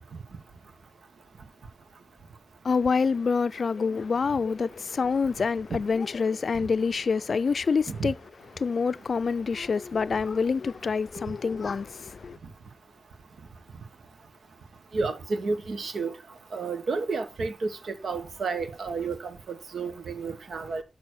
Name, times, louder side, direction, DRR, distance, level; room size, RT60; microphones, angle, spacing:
voice 1, 2.6-8.1 8.6-12.4, left 5 dB, 60° left, 0.4 m, -26 dB
voice 2, 14.9-16.1 16.5-17.5 18.0-19.2 19.7-20.8, right 4 dB, 75° right, 1.3 m, -30 dB
6.9 x 6.1 x 6.3 m
wide cardioid pair, 100°, 0 cm